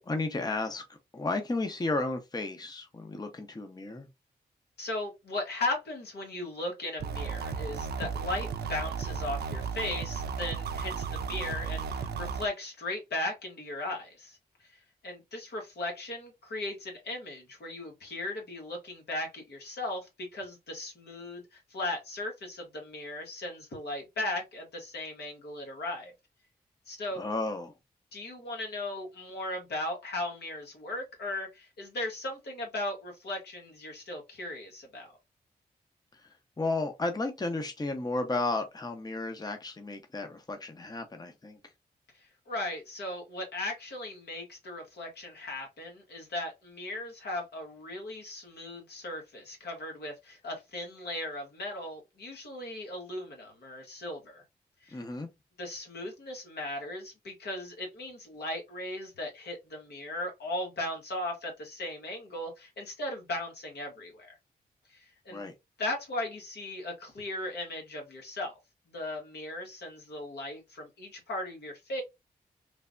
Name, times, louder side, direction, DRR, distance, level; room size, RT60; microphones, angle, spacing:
voice 1, 0.0-4.1 27.1-27.7 36.1-41.6 54.9-55.3 65.3-65.5, left 2 dB, 25° left, 0.7 m, -33 dB
voice 2, 4.8-26.1 26.9-27.2 28.1-35.2 42.1-54.4 54.8-55.0 55.6-64.3 64.9-65.5 65.8-68.5 68.9-72.0, left 2 dB, 75° left, 1.2 m, -37 dB
sound 1, 7.0-12.5, right 6 dB, 70° right, 0.4 m, -34 dB
3.2 x 2.1 x 2.4 m
supercardioid pair, 45°, 17 cm